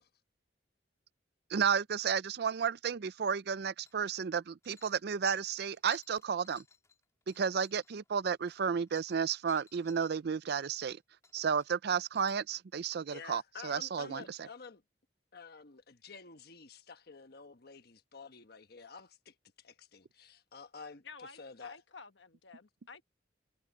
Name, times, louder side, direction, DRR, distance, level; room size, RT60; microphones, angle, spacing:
voice 1, 1.5-6.6 7.3-11.0 11.3-14.2, right 6 dB, 60° right, 0.4 m, -32 dB
sound 1, 3.9-4.3 4.6-10.1 10.4-11.0 11.2-12.4, left 5 dB, 15° left, 3.6 m, -60 dB
voice 2, 13.1-14.8 15.3-21.0 21.3-21.8, left 5 dB, 60° left, 1.2 m, -50 dB
voice 3, 21.0-23.0, left 4 dB, 80° left, 1.3 m, -52 dB
head